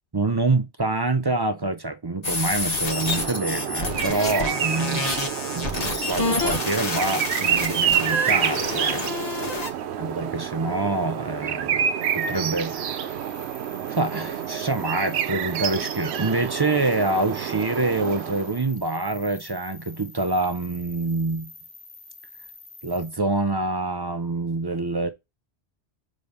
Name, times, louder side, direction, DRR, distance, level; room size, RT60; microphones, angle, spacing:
voice 1, 0.1-5.0 5.5-9.0 9.4-9.6 10.0-11.9 12.1-13.2 13.9-21.5 22.8-25.1, right 2 dB, 35° right, 0.4 m, -26 dB
sound 1, 2.2-9.7, left 3 dB, 40° left, 1.1 m, -28 dB
sound 2, 2.7-18.6, right 9 dB, 85° right, 0.9 m, -28 dB
sound 3, 12.0-23.1, left 3 dB, 65° left, 2.1 m, -46 dB
5.2 x 4.0 x 5.3 m
omnidirectional pair, 1.1 m